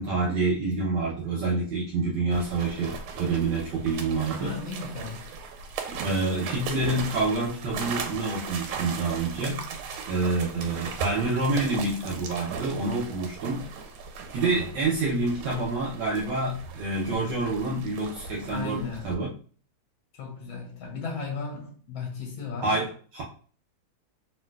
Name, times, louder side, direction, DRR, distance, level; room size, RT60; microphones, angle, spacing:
voice 1, 0.0-4.5 6.0-9.6 10.1-13.7 14.3-19.3 22.6-23.2, right 3 dB, 70° right, -3 dB, 1.1 m, -27 dB
sound 1, 2.3-19.1, right 5 dB, 85° right, 1.5 m, -38 dB
voice 2, 4.3-5.3 10.6-10.8 18.5-19.2 20.1-22.9, left 4 dB, 80° left, 1 dB, 1.4 m, -36 dB
3.1 x 2.8 x 2.2 m, 0.43 s
omnidirectional pair, 2.3 m